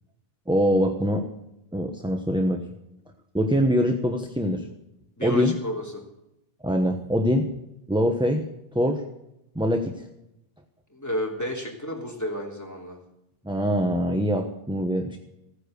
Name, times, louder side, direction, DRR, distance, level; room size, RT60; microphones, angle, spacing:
voice 1, 0.5-1.2 1.7-2.6 3.3-4.6 5.2-5.6 6.6-7.5 7.9-9.0 9.5-10.1 13.4-15.2, equal, 5° right, 4 dB, 1.0 m, -23 dB
voice 2, 5.2-6.0 10.9-13.0, equal, 15° left, -1 dB, 3.3 m, -31 dB
15.5 x 9.9 x 6.7 m, 0.86 s
omnidirectional pair, 1.1 m